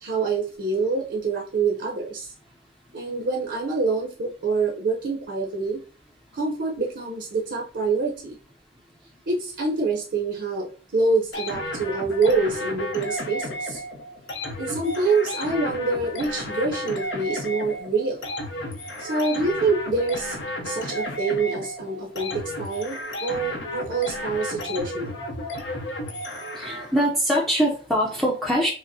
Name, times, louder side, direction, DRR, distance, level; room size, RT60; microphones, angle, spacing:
voice 1, 0.0-2.3 2.9-5.8 6.3-8.4 9.3-13.8 14.6-18.2 19.0-20.4 20.6-25.2, right 3 dB, 70° right, -1 dB, 0.6 m, -26 dB
sound 1, 11.3-27.1, left 1 dB, 80° left, 0.8 m, -33 dB
voice 2, 26.6-28.7, equal, ahead, -4 dB, 0.5 m, -23 dB
4.9 x 2.0 x 2.6 m, 0.38 s
head